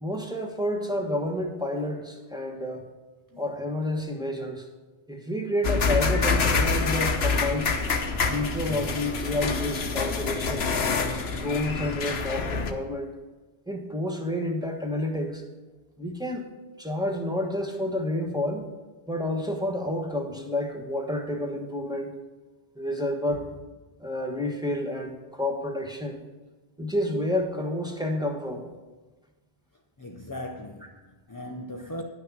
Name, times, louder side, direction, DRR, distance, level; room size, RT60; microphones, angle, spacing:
voice 1, 0.0-2.9 3.4-4.7 5.1-7.8 8.3-10.7 11.4-13.2 13.7-15.4 16.0-16.5 16.8-18.7 19.1-22.2 22.7-23.5 24.0-26.3 26.8-28.7, left 1 dB, 5° right, 1.2 m, -29 dB
sound 1, 5.6-12.7, left 4 dB, 80° left, 1.1 m, -26 dB
voice 2, 30.0-32.0, left 1 dB, 25° left, 0.6 m, -39 dB
10.5 x 6.4 x 6.0 m
omnidirectional pair, 1.0 m